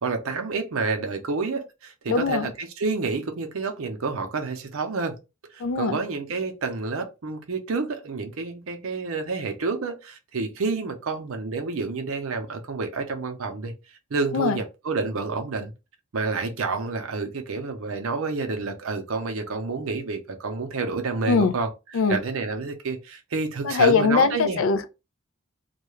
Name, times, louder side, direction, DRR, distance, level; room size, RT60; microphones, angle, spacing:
voice 1, 0.0-5.2 5.5-13.7 14.1-15.7 16.1-24.6, right 4 dB, 70° right, 0.6 m, -29 dB
voice 2, 2.1-2.5 5.6-6.0 14.3-14.6 21.3-21.5 21.9-22.2 23.6-24.9, left 5 dB, 65° left, 0.4 m, -21 dB
2.3 x 2.2 x 3.0 m
head